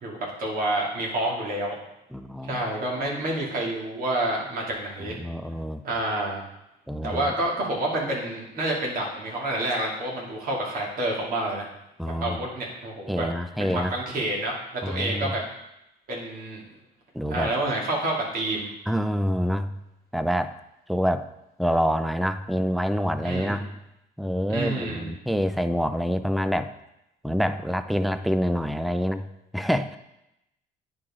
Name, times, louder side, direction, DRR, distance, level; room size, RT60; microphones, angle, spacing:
voice 1, 0.0-1.8 2.4-5.2 5.8-6.4 7.0-11.7 12.2-13.2 13.6-15.4 16.1-16.6 17.3-18.7 23.2-23.6 24.5-25.1, right 1 dB, 55° right, -2 dB, 2.5 m, -28 dB
voice 2, 2.1-2.6 5.0-5.8 6.9-7.3 12.0-12.4 13.1-13.9 14.8-15.3 17.1-17.5 18.9-19.7 20.1-20.5 20.9-21.3 21.6-23.7 24.2-26.7 27.2-29.3 29.5-30.0, equal, ahead, 11 dB, 0.4 m, -26 dB
9.9 x 4.8 x 3.7 m, 0.85 s
cardioid pair, 110°, 17 cm